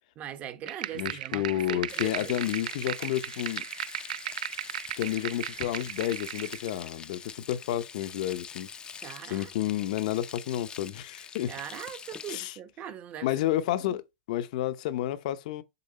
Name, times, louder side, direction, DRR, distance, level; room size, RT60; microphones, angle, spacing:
voice 1, 0.2-2.4 9.0-9.5 11.4-13.3 13.9-14.0, right 9 dB, 35° right, 1.1 m, -41 dB
sound 1, 0.7-6.7, right 11 dB, 90° right, 0.3 m, -36 dB
voice 2, 0.9-3.6 5.0-8.7 9.2-11.5 12.3-12.5 13.2-14.0 14.3-15.6, left 13 dB, 65° left, 0.8 m, -30 dB
Frying (food), 1.9-12.4, left 6 dB, 20° left, 0.6 m, -44 dB
6.9 x 3.9 x 4.1 m
supercardioid pair, 130°, 4 cm